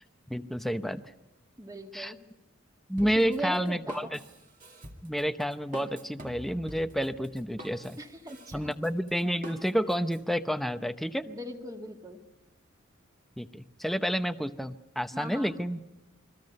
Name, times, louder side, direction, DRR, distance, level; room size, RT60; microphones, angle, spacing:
voice 1, 0.3-1.0 1.9-2.1 2.9-4.2 5.0-8.0 8.5-11.3 13.4-15.8, equal, ahead, 9 dB, 0.7 m, -30 dB
voice 2, 1.6-2.2 3.0-4.1 8.0-8.7 11.3-12.2 15.1-15.5, equal, 20° right, 3 dB, 2.1 m, -39 dB
Drum kit, 3.0-10.2, equal, 40° right, 2.4 m, -46 dB
28.5 x 22.5 x 5.4 m, 0.98 s
head